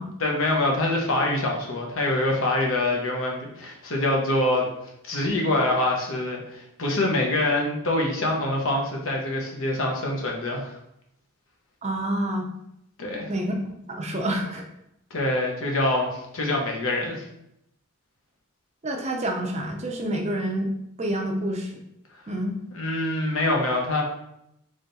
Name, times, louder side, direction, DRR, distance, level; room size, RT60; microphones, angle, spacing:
voice 1, 0.2-4.7 5.0-10.8 13.0-13.3 15.1-17.2 22.7-24.0, left 1 dB, 65° left, 0 dB, 1.0 m, -25 dB
voice 2, 11.8-12.5 13.3-13.5 13.9-14.7 18.8-20.7 21.0-21.8 22.3-22.6, right 1 dB, 30° right, 2 dB, 0.5 m, -28 dB
3.7 x 3.3 x 4.0 m, 0.79 s
head